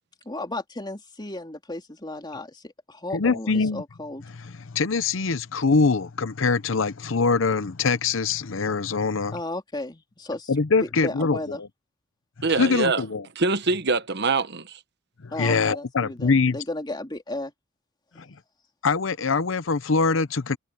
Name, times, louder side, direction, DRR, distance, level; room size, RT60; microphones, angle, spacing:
voice 1, 0.2-4.2 9.3-10.5 10.8-11.6 15.3-17.5 18.1-18.3, left 2 dB, 20° left, 3.3 m, -34 dB
voice 2, 3.1-3.8 4.7-9.3 10.5-11.7 12.6-13.2 15.2-16.6 18.2-18.3 18.8-20.6, left 4 dB, 70° left, 0.8 m, -23 dB
voice 3, 12.4-13.0 13.3-14.8, right 3 dB, 55° right, 1.3 m, -24 dB
head